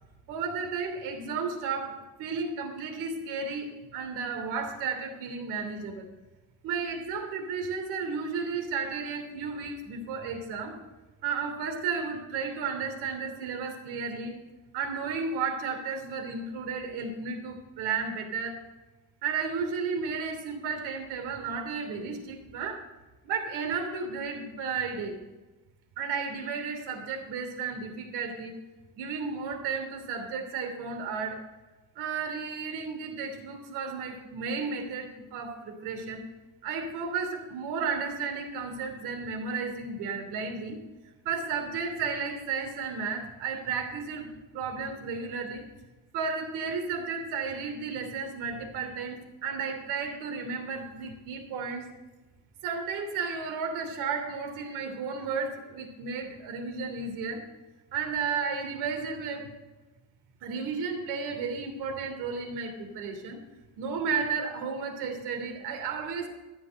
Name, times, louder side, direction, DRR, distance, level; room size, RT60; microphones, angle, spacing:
voice 1, 0.3-6.1 6.6-10.8 11.2-14.4 14.7-18.6 19.2-22.8 23.2-25.2 26.0-28.5 28.9-31.4 32.0-36.2 36.6-40.8 41.2-45.6 46.1-51.9 52.6-57.4 57.9-59.5 60.4-63.4 63.8-66.3, right 5 dB, 75° right, 5 dB, 3.0 m, -33 dB
13.5 x 7.6 x 6.5 m, 1.1 s
cardioid pair, 150°, 40 cm